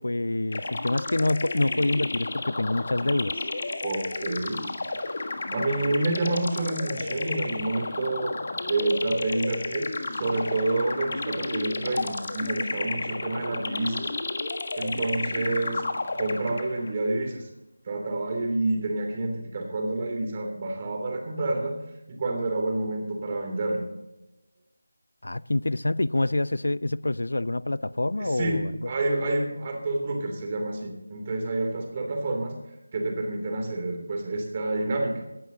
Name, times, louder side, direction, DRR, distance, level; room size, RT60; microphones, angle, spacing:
voice 1, 0.0-3.4 25.2-28.9, left 2 dB, 70° left, 0.4 m, -26 dB
sound 1, 0.5-16.9, left 3 dB, 45° left, 1.4 m, -32 dB
voice 2, 3.8-4.6 5.5-8.4 8.7-9.9 10.1-14.1 14.8-15.8 16.2-17.5 17.8-21.7 22.1-23.9 28.2-32.5 32.9-35.2, right 2 dB, 30° right, 2.8 m, -28 dB
18.0 x 12.0 x 2.8 m
figure-of-eight pair, 165°, 0 cm